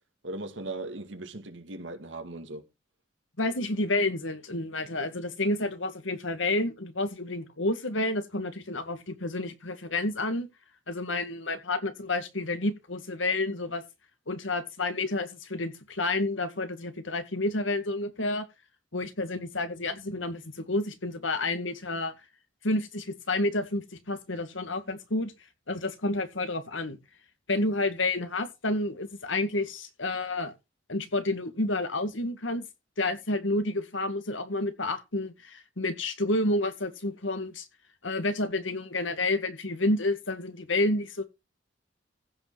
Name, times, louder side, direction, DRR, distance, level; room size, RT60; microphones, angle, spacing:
voice 1, 0.2-2.6, right 2 dB, 70° right, 2.2 m, -38 dB
voice 2, 3.4-10.5 10.9-13.8 14.3-18.5 18.9-22.1 22.6-25.3 25.7-27.0 27.5-30.5 30.9-32.6 33.0-37.7 38.0-41.2, left 2 dB, 80° left, 2.0 m, -30 dB
15.5 x 5.6 x 5.8 m
head